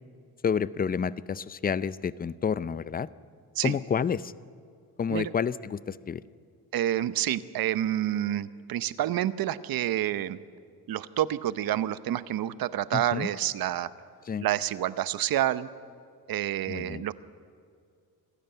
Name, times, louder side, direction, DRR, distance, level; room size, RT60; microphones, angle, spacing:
voice 1, 0.4-3.1 3.6-4.3 5.0-6.2 12.9-13.3 14.3-14.5 16.7-17.1, left 7 dB, 25° left, 17 dB, 0.5 m, -29 dB
voice 2, 6.7-10.4 10.9-13.9 14.4-15.7 16.3-17.1, right 12 dB, 70° right, 14 dB, 0.8 m, -28 dB
26.5 x 12.5 x 9.1 m, 2.3 s
cardioid pair, 105°, 37 cm